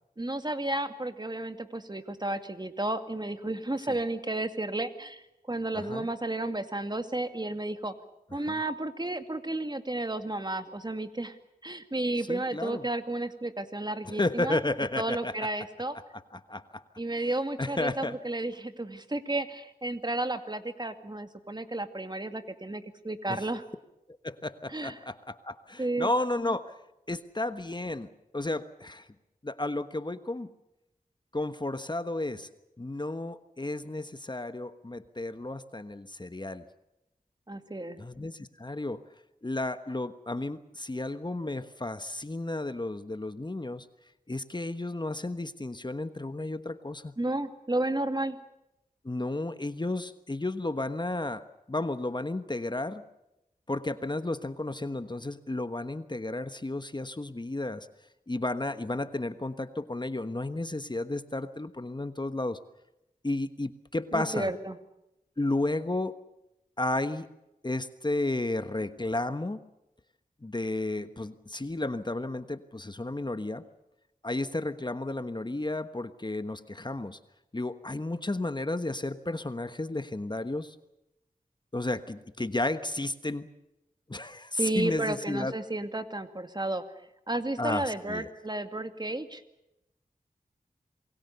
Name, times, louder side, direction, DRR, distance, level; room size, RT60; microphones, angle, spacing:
voice 1, 0.2-7.9 8.3-11.3 11.6-14.6 15.0-16.0 17.0-23.6 24.7-25.0 25.8-26.1 37.5-38.0 47.2-48.4 64.1-64.8 84.5-86.8 87.3-89.4, right 2 dB, 30° right, 9 dB, 2.3 m, -32 dB
voice 2, 5.7-6.1 8.5-8.6 12.3-12.8 14.1-15.3 16.3-16.8 17.6-18.2 23.3-23.5 24.2-26.7 27.1-29.1 29.4-30.5 31.3-32.5 32.8-36.7 38.0-39.0 39.4-43.9 44.3-47.1 49.0-53.0 53.7-57.9 58.3-62.6 63.2-64.5 65.4-66.2 66.8-67.3 67.6-69.6 70.4-73.6 74.2-77.2 77.5-80.7 81.7-83.5 84.1-85.5 87.6-88.3, left 2 dB, 30° left, 11 dB, 1.3 m, -33 dB
27.5 x 21.5 x 6.9 m, 0.90 s
cardioid pair, 45°, 15 cm